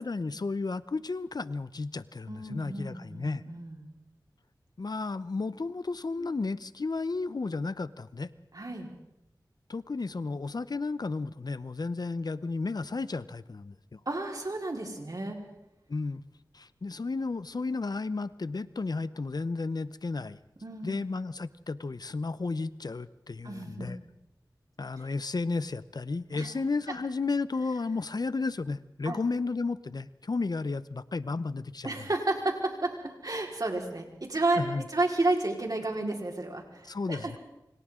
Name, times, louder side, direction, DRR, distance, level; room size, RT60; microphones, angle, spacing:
voice 1, 0.0-3.4 4.8-8.3 9.7-14.0 15.9-16.2 16.5-20.4 20.8-24.0 24.8-31.9 34.6-34.8 36.9-37.4, left 3 dB, 60° left, 15 dB, 0.7 m, -33 dB
voice 2, 2.3-3.9 8.5-8.9 14.1-15.4 20.6-21.0 23.4-23.9 26.3-26.5 29.0-29.2 31.8-37.3, right 2 dB, 55° right, 1 dB, 4.3 m, -32 dB
28.0 x 25.0 x 3.8 m, 0.86 s
wide cardioid pair, 45°, 8 cm